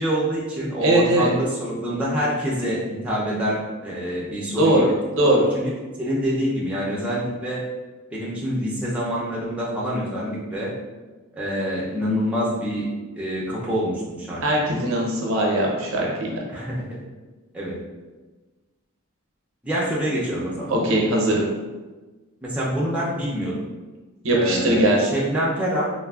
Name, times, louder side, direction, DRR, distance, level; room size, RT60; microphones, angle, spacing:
voice 1, 0.0-4.9 5.2-5.7 6.0-7.6 8.1-10.7 11.3-12.9 13.2-14.4 16.5-16.9 17.5-17.8 19.6-20.7 22.4-23.5 24.3-25.9, equal, 5° right, -6 dB, 0.4 m, -26 dB
voice 2, 0.8-1.3 4.6-5.4 14.4-16.4 20.7-21.5 24.2-25.1, right 1 dB, 70° right, -1 dB, 0.6 m, -20 dB
3.2 x 2.1 x 2.2 m, 1.2 s
head